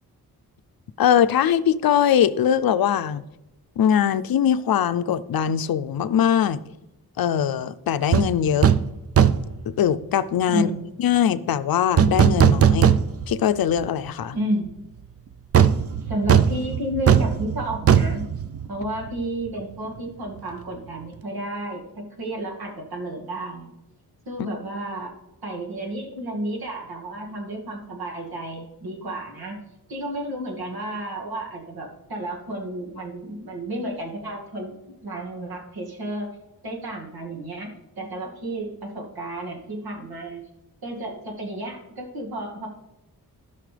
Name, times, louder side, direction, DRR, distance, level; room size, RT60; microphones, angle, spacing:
voice 1, 1.0-3.2 3.8-6.6 7.2-8.7 9.7-10.7 11.0-12.9 13.3-14.4, left 9 dB, 70° left, 13 dB, 0.6 m, -21 dB
sound 1, 8.1-8.3 8.6-8.9 9.2-9.6 12.0-13.4 13.8-13.9 15.5-19.2 19.5-19.6, right 8 dB, 40° right, 0.5 m, -18 dB
voice 2, 10.5-10.9 14.3-14.8 16.0-18.2 18.7-23.7 24.3-25.1 25.4-29.6 29.9-34.7 35.0-36.3 36.6-37.7 38.0-40.4 40.8-42.7, right 1 dB, 75° right, 0 dB, 2.2 m, -31 dB
16.5 x 5.7 x 3.4 m, 0.96 s
wide cardioid pair, 105°, 37 cm